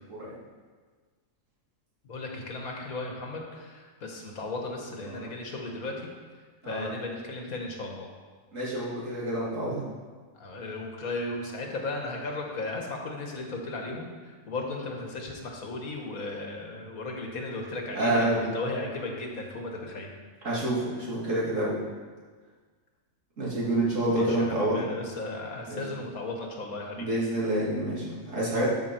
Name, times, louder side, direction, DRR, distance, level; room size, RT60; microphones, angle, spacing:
voice 1, 2.1-5.9 6.6-8.1 10.4-20.1 24.1-27.1 28.5-28.7, left 2 dB, 90° left, 1 dB, 1.9 m, -35 dB
voice 2, 8.5-9.8 17.9-18.5 20.4-21.7 23.4-24.8 25.7-25.8 27.0-28.7, right 1 dB, 65° right, -7 dB, 2.9 m, -28 dB
12.5 x 5.8 x 4.5 m, 1.5 s
omnidirectional pair, 1.4 m